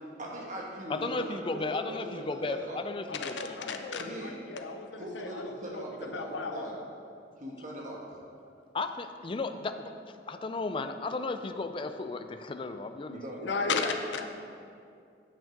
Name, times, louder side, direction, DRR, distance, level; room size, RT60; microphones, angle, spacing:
voice 1, 0.2-2.8 4.0-4.3 5.0-6.8 7.4-8.0 13.1-13.8, right 1 dB, 40° right, -3 dB, 1.3 m, -40 dB
voice 2, 0.9-3.9 8.7-9.9 10.3-13.2, left 3 dB, 30° left, 8 dB, 0.4 m, -35 dB
voice 3, 3.1-5.4 5.7-5.8 6.1-6.7 13.4-14.3, left 4 dB, 75° left, 5 dB, 0.6 m, -34 dB
8.9 x 6.2 x 5.2 m, 2.4 s
head